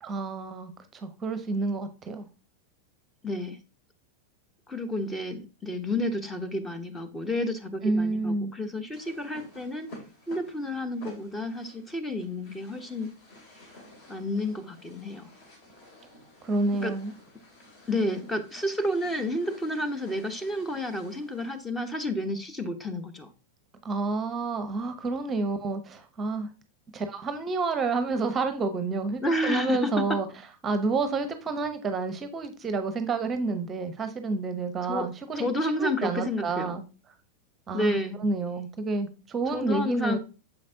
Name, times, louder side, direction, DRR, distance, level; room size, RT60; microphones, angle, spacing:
voice 1, 0.0-2.3 7.8-8.5 16.4-17.1 23.8-26.5 26.9-30.3 30.6-35.5 35.8-36.8 37.7-40.2, right 3 dB, 25° right, 9 dB, 0.7 m, -29 dB
voice 2, 3.2-3.6 4.7-9.9 10.3-13.1 14.1-15.3 16.8-16.9 17.9-23.3 29.2-30.2 34.8-35.1 35.4-36.8 37.7-38.2 39.5-40.2, left 1 dB, 10° left, 8 dB, 0.9 m, -30 dB
sound 1, 8.9-21.7, left 1 dB, 40° left, 2.2 m, -52 dB
7.0 x 5.1 x 2.7 m, 0.33 s
figure-of-eight pair, 90°, 0 cm